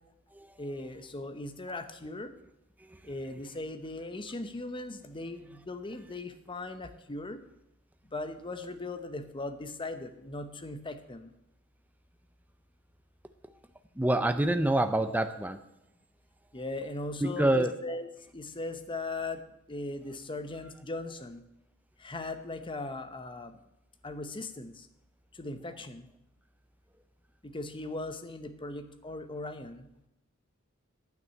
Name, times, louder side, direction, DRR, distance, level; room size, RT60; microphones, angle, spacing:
voice 1, 0.6-2.3 3.0-7.4 8.0-11.3 16.5-21.4 22.0-23.6 24.0-24.9 25.3-26.1 27.4-29.9, left 2 dB, 25° left, 8 dB, 0.8 m, -39 dB
voice 2, 14.0-15.6 17.2-17.7, right 1 dB, 10° right, 9 dB, 0.5 m, -26 dB
9.3 x 6.1 x 8.3 m, 0.84 s
head